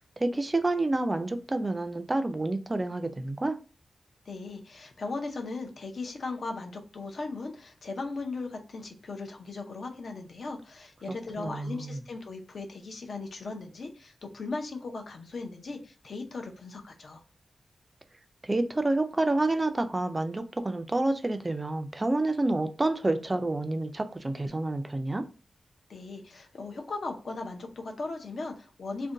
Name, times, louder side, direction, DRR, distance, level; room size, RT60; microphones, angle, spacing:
voice 1, 0.0-3.6 11.4-12.0 18.4-25.2, right 2 dB, 20° right, 8 dB, 0.3 m, -28 dB
voice 2, 4.3-17.2 25.9-29.1, left 3 dB, 65° left, 3 dB, 0.6 m, -38 dB
2.5 x 2.2 x 3.6 m, 0.34 s
wide cardioid pair, 140°, 0 cm